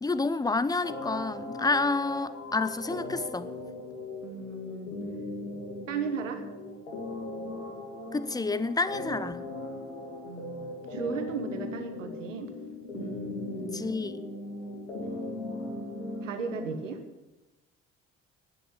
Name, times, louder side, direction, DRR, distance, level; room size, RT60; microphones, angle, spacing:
voice 1, 0.0-3.5 8.1-9.4 13.7-14.1, left 3 dB, 10° left, 0.6 m, -29 dB
sound 1, 0.8-16.8, left 2 dB, 80° left, 2.1 m, -38 dB
voice 2, 4.2-5.0 5.9-6.4 10.2-12.5 12.9-13.8 16.2-17.0, right 5 dB, 75° right, 1.3 m, -36 dB
11.0 x 9.5 x 8.4 m
figure-of-eight pair, 50°, 38 cm